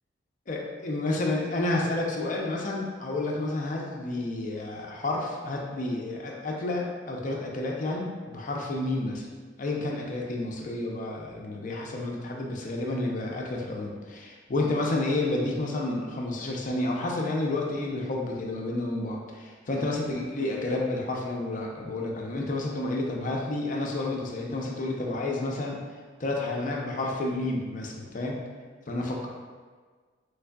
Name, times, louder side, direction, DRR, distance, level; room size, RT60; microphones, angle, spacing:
voice 1, 0.5-9.3 9.6-25.8 26.2-28.4 28.9-29.3, left 2 dB, 45° left, -1 dB, 0.5 m, -30 dB
3.5 x 3.2 x 2.2 m, 1.5 s
head